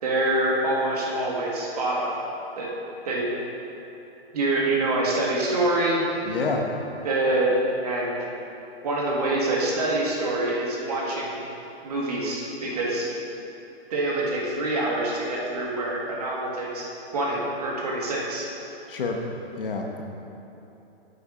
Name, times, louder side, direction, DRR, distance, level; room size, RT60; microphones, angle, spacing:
voice 1, 0.0-2.2 2.6-2.7 3.0-3.3 4.3-6.0 7.0-7.5 7.8-8.1 8.8-11.4 11.8-13.1 13.9-16.9 17.1-18.5, right 2 dB, 35° right, -3 dB, 1.7 m, -25 dB
voice 2, 6.2-6.6 18.9-19.2 19.6-20.0, left 4 dB, 55° left, 2 dB, 1.2 m, -28 dB
8.3 x 8.2 x 4.9 m, 3.0 s
hypercardioid pair, 175°, 32 cm